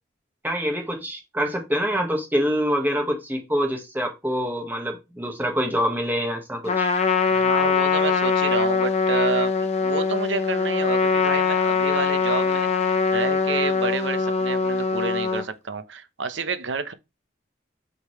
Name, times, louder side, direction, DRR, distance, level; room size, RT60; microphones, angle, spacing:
voice 1, 0.4-6.9, equal, 10° right, 1.6 m, -25 dB
Trumpet, 6.6-15.4, left 5 dB, 35° left, 1.0 m, -22 dB
voice 2, 7.3-16.9, right 4 dB, 80° right, 0.9 m, -29 dB
8.3 x 3.9 x 3.2 m
head